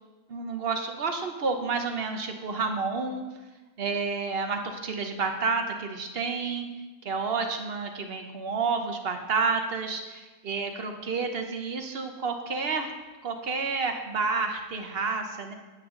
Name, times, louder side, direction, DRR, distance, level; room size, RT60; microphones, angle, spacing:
voice 1, 0.3-3.2 3.8-6.7 7.0-12.9 13.2-15.5, right 4 dB, 45° right, 5 dB, 0.9 m, -30 dB
9.6 x 8.8 x 3.8 m, 1.2 s
omnidirectional pair, 1.7 m